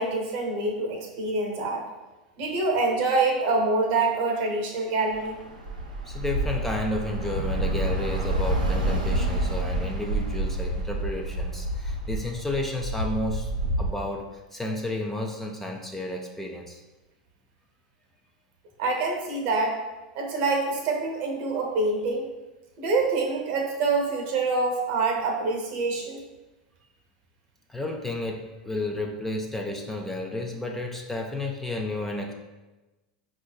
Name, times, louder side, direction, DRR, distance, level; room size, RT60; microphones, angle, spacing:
voice 1, 0.0-1.8 2.4-5.4 18.8-19.8 20.2-22.3 22.8-26.2, right 3 dB, 55° right, 2 dB, 0.7 m, -26 dB
Bus / Traffic noise roadway noise, 5.1-13.9, right 1 dB, 85° right, 0.6 m, -28 dB
voice 2, 6.0-13.5 13.8-16.8 27.7-32.3, left 2 dB, 5° left, 0 dB, 0.4 m, -32 dB
5.2 x 2.4 x 2.2 m, 1.1 s
hypercardioid pair, 90°, 4 cm